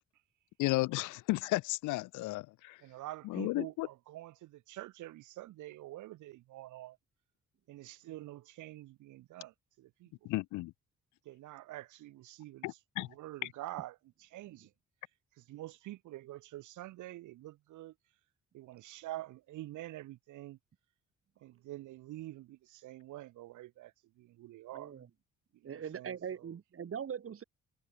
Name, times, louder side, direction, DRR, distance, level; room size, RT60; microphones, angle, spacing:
voice 1, 0.6-2.8 3.2-3.9 10.2-10.7 12.6-13.1, left 20 dB, 80° left, 0.4 m, -33 dB
voice 2, 2.8-7.0 7.7-10.1 11.3-14.7 15.4-17.9 18.5-20.6 21.4-23.9 24.2-24.9 25.6-26.5, right 16 dB, 80° right, 0.9 m, -47 dB
voice 3, 24.7-25.1 25.6-27.4, right 8 dB, 45° right, 2.3 m, -41 dB
cardioid pair, 90°, 30 cm